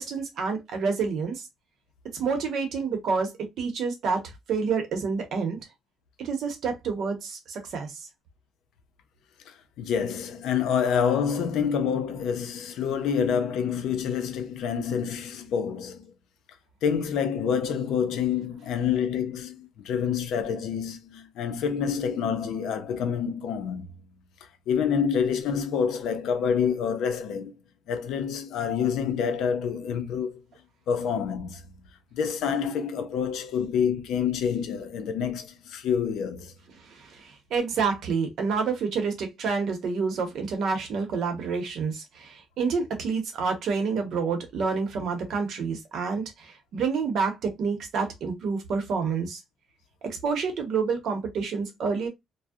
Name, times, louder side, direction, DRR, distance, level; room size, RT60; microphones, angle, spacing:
voice 1, 0.0-1.4 2.1-5.6 6.2-8.1 36.8-49.4 50.0-52.1, right 5 dB, 65° right, 0.7 m, -28 dB
voice 2, 9.5-16.1 16.8-23.8 24.7-27.5 27.9-30.4 30.9-31.6 32.1-36.5, left 7 dB, 85° left, 0.4 m, -27 dB
2.6 x 2.0 x 2.3 m
cardioid pair, 150°, 0 cm